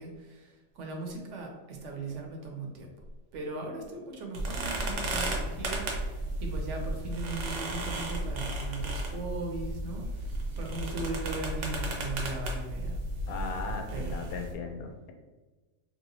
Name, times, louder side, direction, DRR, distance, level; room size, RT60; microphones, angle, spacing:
voice 1, 0.0-2.9 3.3-13.0 13.9-14.3, right 3 dB, 65° right, 1 dB, 0.8 m, -38 dB
sound 1, 4.3-14.5, right 1 dB, 85° right, 1.1 m, -34 dB
voice 2, 13.3-15.1, left 4 dB, 90° left, 4 dB, 1.0 m, -37 dB
3.1 x 2.8 x 2.7 m, 1.2 s
omnidirectional pair, 1.5 m